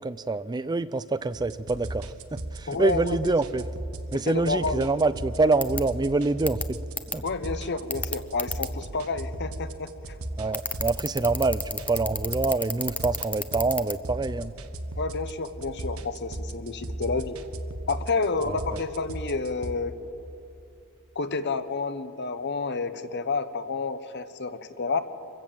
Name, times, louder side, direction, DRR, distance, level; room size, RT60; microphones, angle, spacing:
voice 1, 0.0-3.7 4.1-6.8 7.1-7.2 10.4-14.5 18.4-18.8, right 3 dB, 20° right, 15 dB, 0.4 m, -26 dB
sound 1, 1.3-19.7, right 1 dB, 90° right, 1.3 m, -37 dB
voice 2, 2.7-3.3 4.3-4.8 7.2-9.9 15.0-17.4 17.9-19.9 21.1-25.0, left 4 dB, 55° left, 11 dB, 1.1 m, -30 dB
sound 2, 5.6-5.8 6.5-6.6 7.0-7.2 7.9-8.7 10.5-13.9, left 3 dB, 5° left, 0.8 m, -29 dB
26.0 x 15.5 x 7.7 m, 2.7 s
head